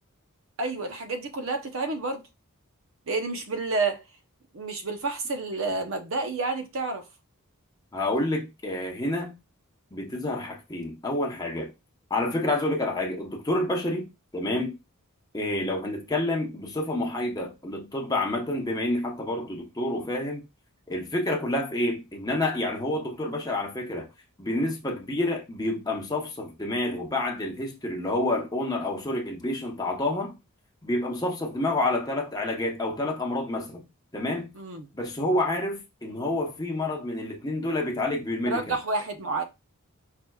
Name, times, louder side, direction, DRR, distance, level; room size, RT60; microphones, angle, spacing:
voice 1, 0.6-2.2 3.1-4.0 4.5-7.0 34.5-34.9 38.4-39.4, right 3 dB, 65° right, 0.7 m, -29 dB
voice 2, 7.9-9.4 9.9-11.7 12.1-14.1 14.3-14.8 15.3-20.4 20.9-24.1 24.4-30.3 30.8-33.8 34.1-34.5 34.9-38.8, left 1 dB, 15° left, 0.8 m, -28 dB
4.7 x 3.3 x 2.3 m
head